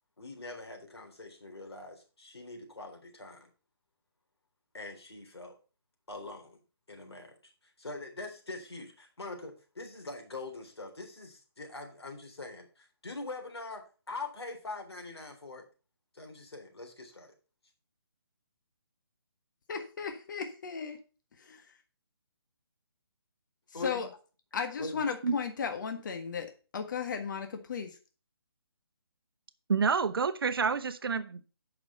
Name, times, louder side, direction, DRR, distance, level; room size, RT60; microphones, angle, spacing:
voice 1, 0.2-3.5 4.7-5.5 6.1-6.6 6.9-15.7 16.1-17.3 23.7-24.1 24.8-25.0, left 2 dB, 85° left, 3 dB, 3.7 m, -43 dB
voice 2, 19.7-21.0 21.4-21.6 23.8-24.1 24.5-28.0, left 6 dB, 50° left, 6 dB, 1.5 m, -35 dB
voice 3, 29.7-31.5, right 5 dB, 65° right, 12 dB, 0.9 m, -28 dB
8.4 x 6.0 x 5.5 m, 0.35 s
figure-of-eight pair, 155°, 13 cm